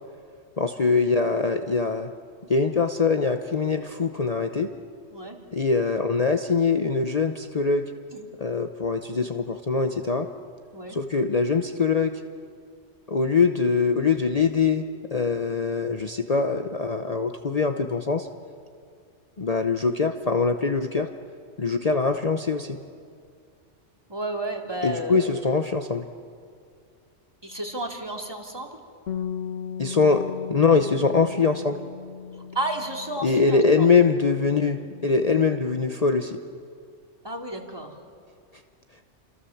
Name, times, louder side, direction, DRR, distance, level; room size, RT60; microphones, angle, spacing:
voice 1, 0.6-2.1 2.5-4.7 5.5-7.9 8.4-10.3 10.9-12.2 13.1-14.9 15.1-18.3 19.4-21.1 21.6-22.8 24.8-26.0 29.8-31.8 33.2-36.4, left 4 dB, 35° left, 6 dB, 0.9 m, -23 dB
voice 2, 24.1-25.3 27.4-28.7 32.5-33.9 37.2-37.9, right 1 dB, 20° right, 1 dB, 2.9 m, -32 dB
Bass guitar, 29.1-33.8 34.0-35.3, left 8 dB, 80° left, 1.5 m, -37 dB
29.5 x 26.5 x 7.2 m, 2.3 s
omnidirectional pair, 1.3 m